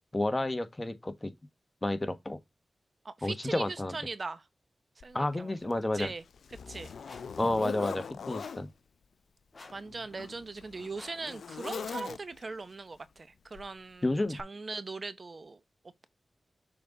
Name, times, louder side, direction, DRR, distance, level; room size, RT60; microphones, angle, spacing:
voice 1, 0.1-1.3 1.8-2.4 3.2-4.0 5.1-6.1 7.4-8.7 14.0-14.4, left 2 dB, 25° left, 1.3 m, -30 dB
voice 2, 3.0-4.5 5.0-5.5 5.9-6.2 6.7-6.9 9.7-15.6, right 3 dB, 50° right, 0.8 m, -40 dB
Zipper (clothing), 5.0-5.1 5.7-8.6 9.6-12.6 13.5-13.8 14.4-14.5, left 6 dB, 90° left, 0.5 m, -41 dB
sound 1, 7.0-7.4 8.4-8.8 9.5-9.9 10.9-11.3, left 3 dB, 45° left, 1.9 m, -52 dB
6.8 x 3.9 x 3.9 m
cardioid pair, 50°, 0 cm